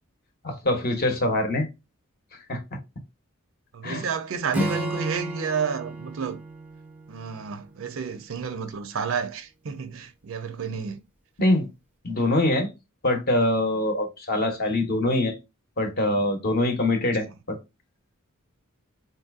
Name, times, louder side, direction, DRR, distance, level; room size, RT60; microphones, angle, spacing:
voice 1, 0.4-1.7 2.5-2.6 3.8-4.0 11.4-11.7 12.0-12.7 13.0-15.3 15.8-17.6, left 1 dB, 45° left, 0.8 m, -24 dB
voice 2, 3.7-6.4 7.1-11.0 17.1-17.3, right 6 dB, 65° right, 0.5 m, -31 dB
Acoustic guitar / Strum, 4.5-8.0, right 1 dB, 5° right, 0.4 m, -32 dB
4.0 x 2.6 x 2.4 m
head